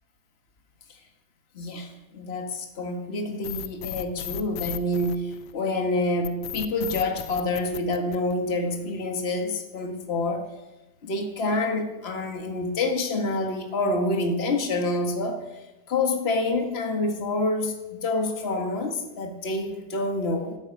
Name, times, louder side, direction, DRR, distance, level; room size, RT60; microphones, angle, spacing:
voice 1, 1.5-10.5 11.0-15.4 15.9-20.6, left 2 dB, 35° left, 3 dB, 1.9 m, -27 dB
sound 1, 3.4-5.7 6.2-8.7, left 12 dB, 80° left, 1.5 m, -35 dB
13.0 x 9.8 x 9.1 m, 1.0 s
omnidirectional pair, 2.1 m